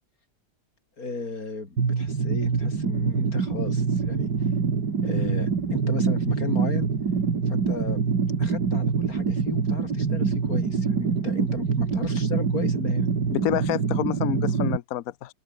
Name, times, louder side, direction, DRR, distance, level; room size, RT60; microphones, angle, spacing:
voice 1, 1.0-4.5 5.0-6.9 7.5-8.0 8.4-13.1, left 3 dB, 40° left, 4.3 m, -34 dB
sound 1, 1.8-14.8, right 5 dB, 55° right, 2.9 m, -25 dB
voice 2, 13.3-15.3, left 13 dB, 70° left, 0.8 m, -28 dB
open air
omnidirectional pair, 2.3 m